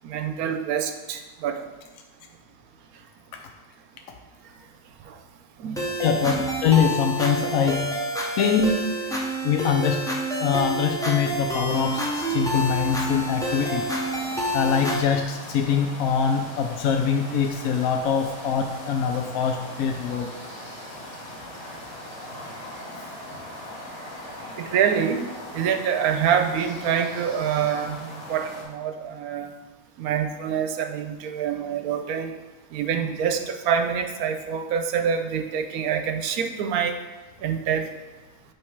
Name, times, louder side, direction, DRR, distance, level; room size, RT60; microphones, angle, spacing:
voice 1, 0.0-1.7 5.1-5.2 5.6-5.9 6.3-6.5 24.6-25.2 25.5-29.5 30.0-32.3 32.7-37.0 37.4-37.9, right 7 dB, 80° right, 7 dB, 1.1 m, -26 dB
sound 1, 5.8-15.0, right 1 dB, 5° left, 0.5 m, -28 dB
voice 2, 6.0-8.1 8.3-8.9 9.4-10.1 10.4-13.9 14.5-20.3, left 6 dB, 70° left, 4 dB, 1.0 m, -23 dB
sound 2, 11.7-28.6, left 1 dB, 40° left, 2.3 m, -40 dB
8.7 x 3.6 x 4.6 m, 1.2 s
omnidirectional pair, 1.6 m